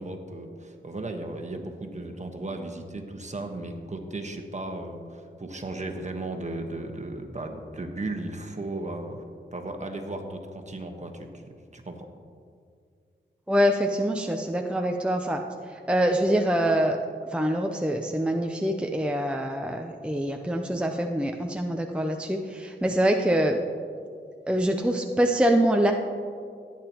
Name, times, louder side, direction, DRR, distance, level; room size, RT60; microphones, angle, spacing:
voice 1, 0.0-9.2 9.5-11.3 11.7-12.1, right 2 dB, 35° right, 4 dB, 1.3 m, -35 dB
voice 2, 13.5-15.4 15.9-17.0 17.3-23.6 24.5-25.9, equal, 5° right, 3 dB, 0.6 m, -24 dB
16.5 x 8.9 x 3.0 m, 2.3 s
cardioid pair, 60°, 20 cm